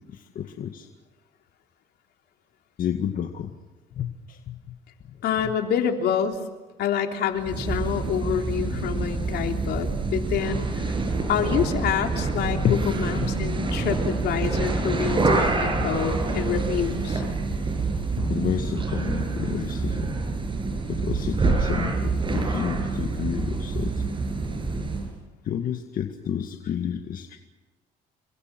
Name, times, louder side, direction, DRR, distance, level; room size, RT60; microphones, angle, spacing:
voice 1, 0.1-0.9 2.8-3.6 3.9-4.8 5.0-5.5 12.5-12.8 13.1-13.3 18.1-20.1 20.9-24.0 25.4-27.4, left 9 dB, 55° left, 5 dB, 2.0 m, -30 dB
voice 2, 5.2-6.4 6.8-11.0 11.3-17.2, left 8 dB, 70° left, 4 dB, 3.6 m, -27 dB
sound 1, 7.4-25.1, right 3 dB, 30° right, 7.0 m, -26 dB
29.5 x 23.5 x 6.2 m, 1.2 s
cardioid pair, 110°, 17 cm